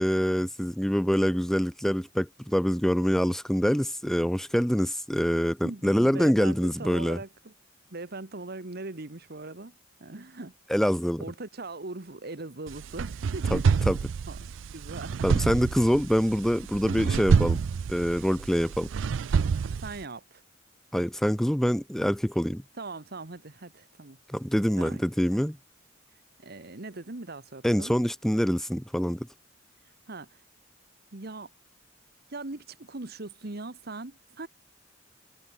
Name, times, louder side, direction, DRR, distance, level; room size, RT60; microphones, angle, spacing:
voice 1, 0.0-7.2 10.7-11.2 13.5-14.0 15.2-17.6 17.9-18.9 20.9-22.6 24.3-25.6 27.6-29.3, equal, ahead, 0.7 m, -25 dB
voice 2, 5.6-7.5 7.9-9.7 10.0-10.5 11.2-13.7 14.2-14.4 14.7-15.5 19.6-20.4 22.8-24.2 24.8-25.0 25.3-25.4 26.4-27.9 30.1-30.4 31.1-31.5 32.3-34.5, right 2 dB, 55° right, 1.4 m, -40 dB
sound 1, 12.7-20.0, right 5 dB, 80° right, 0.4 m, -27 dB
head